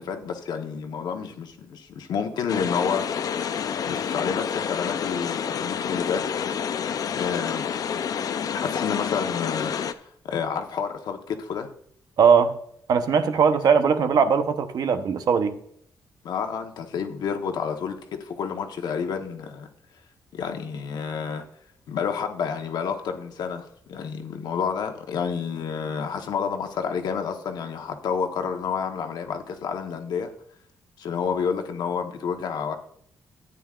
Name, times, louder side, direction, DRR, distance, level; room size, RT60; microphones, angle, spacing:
voice 1, 0.0-3.1 3.9-6.2 7.2-7.7 8.6-11.7 16.2-19.7 20.3-21.4 21.9-30.3 31.0-32.8, left 6 dB, 75° left, 1.2 m, -29 dB
sound 1, 2.5-9.9, left 7 dB, 55° left, 0.5 m, -28 dB
voice 2, 12.2-12.5 12.9-15.6, right 6 dB, 65° right, 0.9 m, -20 dB
13.5 x 9.2 x 2.5 m
cardioid pair, 125°, 7 cm